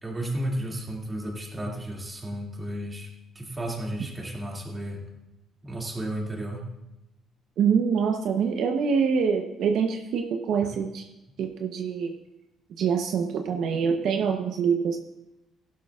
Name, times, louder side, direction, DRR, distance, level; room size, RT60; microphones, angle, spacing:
voice 1, 0.0-3.1 3.3-5.0 5.6-6.7 10.6-10.7, right 1 dB, 15° right, -1 dB, 2.4 m, -33 dB
voice 2, 7.6-11.0 11.4-12.1 12.8-15.0, right 6 dB, 70° right, 4 dB, 0.9 m, -25 dB
15.5 x 12.0 x 2.4 m, 0.92 s
cardioid pair, 125°, 0 cm